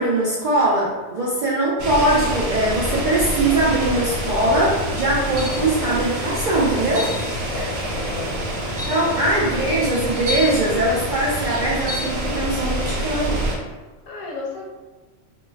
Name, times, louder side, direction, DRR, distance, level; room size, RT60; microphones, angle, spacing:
voice 1, 0.0-7.1 8.8-13.4, right 1 dB, 55° right, -6 dB, 0.5 m, -21 dB
sound 1, 1.8-13.6, right 1 dB, 85° right, 1.1 m, -26 dB
sound 2, 5.4-5.7 6.9-7.2 8.2-8.3 8.8-9.1 10.3-10.6 11.9-12.1, left 1 dB, 10° right, 0.8 m, -29 dB
voice 2, 7.5-8.4 14.1-14.7, left 3 dB, 80° left, -2 dB, 1.1 m, -33 dB
2.9 x 2.2 x 3.3 m, 1.2 s
omnidirectional pair, 1.3 m